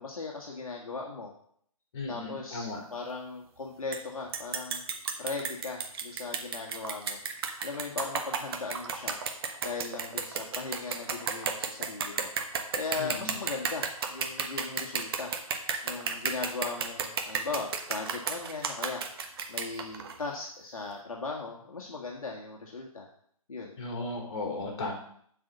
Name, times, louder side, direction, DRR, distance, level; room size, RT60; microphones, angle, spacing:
voice 1, 0.0-1.3 2.1-4.8 5.2-7.2 7.6-9.2 9.6-12.3 12.7-15.3 15.8-19.0 19.5-23.1 23.5-23.8, left 4 dB, 70° left, -1 dB, 1.6 m, -38 dB
voice 2, 1.9-2.8 13.0-13.3 23.8-24.9, left 2 dB, 45° left, 1 dB, 3.3 m, -35 dB
sound 1, 3.9-4.0 4.3-20.2, right 6 dB, 40° right, 1.1 m, -33 dB
7.7 x 4.9 x 6.8 m, 0.64 s
figure-of-eight pair, 140°, 19 cm